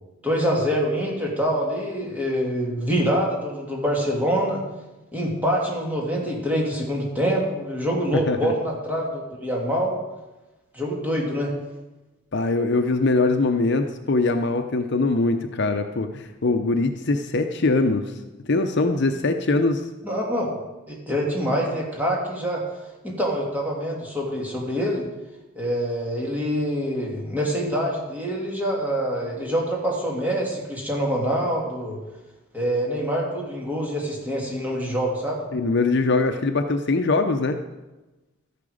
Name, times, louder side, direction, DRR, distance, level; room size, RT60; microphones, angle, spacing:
voice 1, 0.2-4.6 5.1-10.0 10.7-11.5 20.0-20.5 20.9-22.6 23.0-25.1 25.5-32.0 32.5-35.4, equal, 10° right, -3 dB, 2.6 m, -25 dB
voice 2, 8.1-8.5 12.3-18.1 18.5-19.8 35.5-37.6, left 3 dB, 55° left, 6 dB, 0.7 m, -22 dB
13.5 x 11.0 x 5.0 m, 1.1 s
head